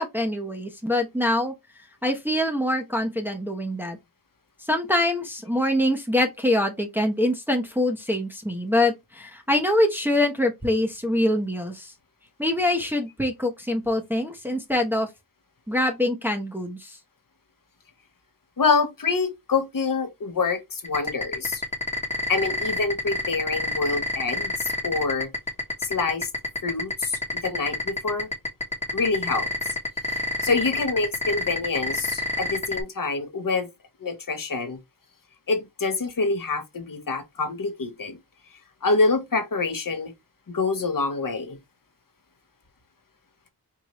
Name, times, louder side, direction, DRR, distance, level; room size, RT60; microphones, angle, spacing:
voice 1, 0.0-1.5 2.0-4.0 4.6-11.9 12.4-15.1 15.7-17.0, left 1 dB, 5° right, 0.8 m, -24 dB
voice 2, 18.6-21.6 22.3-25.3 25.8-26.3 26.6-28.3 28.9-29.5 30.4-33.7 34.0-34.8 35.5-38.2 38.8-40.1 40.5-41.6, left 4 dB, 55° left, 1.0 m, -26 dB
sound 1, 20.8-32.8, left 2 dB, 15° left, 1.1 m, -27 dB
4.7 x 2.7 x 3.0 m
wide cardioid pair, 105°, 40 cm